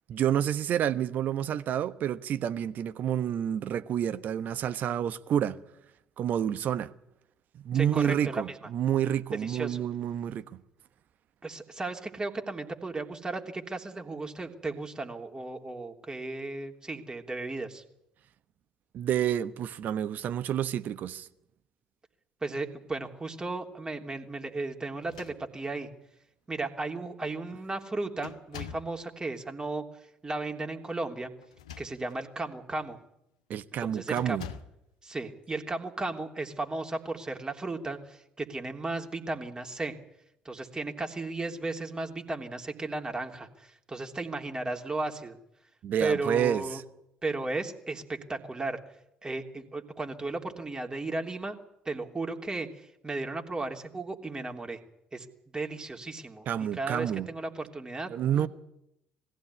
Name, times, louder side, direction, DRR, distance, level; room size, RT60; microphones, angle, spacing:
voice 1, 0.1-5.6 6.2-6.9 7.6-10.6 18.9-21.3 33.5-34.5 45.8-46.8 56.5-57.3 58.1-58.5, right 10 dB, 55° right, 1.2 m, -29 dB
voice 2, 7.7-8.6 9.3-9.8 11.4-17.8 22.4-25.9 26.5-29.8 30.2-31.3 31.8-33.0 33.8-34.4 35.0-39.9 40.4-45.4 46.0-46.8 47.2-48.8 49.2-51.5 51.8-54.8 55.1-58.5, right 3 dB, 25° right, 3.3 m, -35 dB
sound 1, 25.0-25.9 26.7-26.8 27.2-27.6 28.2-29.0 31.4-32.3 32.8-33.0 34.1-34.8, left 8 dB, 80° left, 1.1 m, -45 dB
21.5 x 15.5 x 9.8 m
figure-of-eight pair, 50°, 3 cm